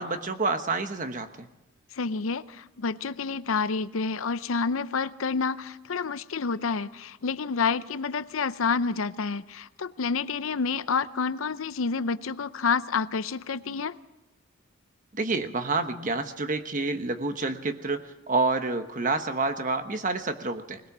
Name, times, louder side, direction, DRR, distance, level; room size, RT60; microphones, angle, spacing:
voice 1, 0.0-1.5 15.1-20.8, right 3 dB, 40° right, 8 dB, 1.1 m, -28 dB
voice 2, 1.9-14.0, left 5 dB, 75° left, 15 dB, 0.6 m, -29 dB
21.0 x 20.5 x 6.1 m, 1.0 s
head